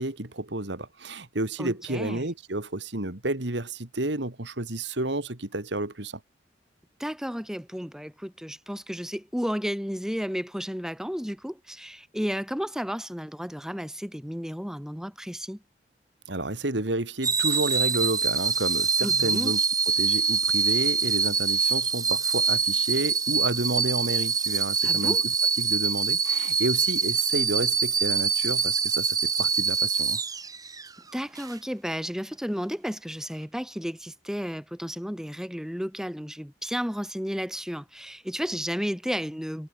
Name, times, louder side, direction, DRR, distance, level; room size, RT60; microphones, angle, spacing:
voice 1, 0.0-6.2 16.3-19.6 20.0-25.2 25.6-30.2, right 2 dB, 75° right, 2.6 m, -30 dB
voice 2, 1.6-2.3 7.0-15.6 19.0-19.5 24.8-25.2 31.1-39.7, equal, 5° right, 2.1 m, -33 dB
sound 1, 17.2-30.9 31.4-31.5, right 5 dB, 20° right, 1.8 m, -25 dB
head